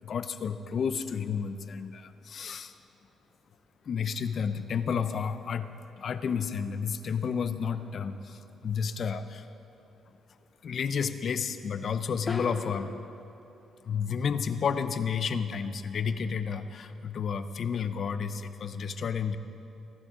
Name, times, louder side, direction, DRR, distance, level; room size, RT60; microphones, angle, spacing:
voice 1, 0.0-2.8 3.8-9.5 10.6-13.0 13.8-19.4, left 6 dB, 55° left, 11 dB, 0.7 m, -31 dB
sound 1, 7.7-8.3 12.3-13.2, left 4 dB, 35° left, 1.1 m, -38 dB
24.5 x 11.5 x 3.8 m, 2.9 s
cardioid pair, 90°, 0 cm